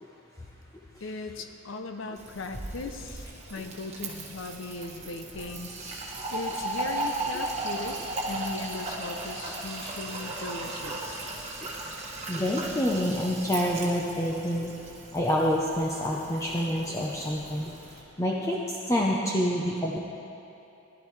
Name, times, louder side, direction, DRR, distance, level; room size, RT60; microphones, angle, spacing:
voice 1, 1.0-5.7 6.3-8.0 8.3-11.3, left 3 dB, 65° left, 6 dB, 0.6 m, -38 dB
Fill (with liquid), 2.2-18.0, right 2 dB, 35° right, 1.5 m, -37 dB
voice 2, 12.3-14.7 15.1-17.7 18.2-18.6 18.9-20.0, equal, 15° left, -3 dB, 0.7 m, -27 dB
16.0 x 11.5 x 3.3 m, 2.9 s
head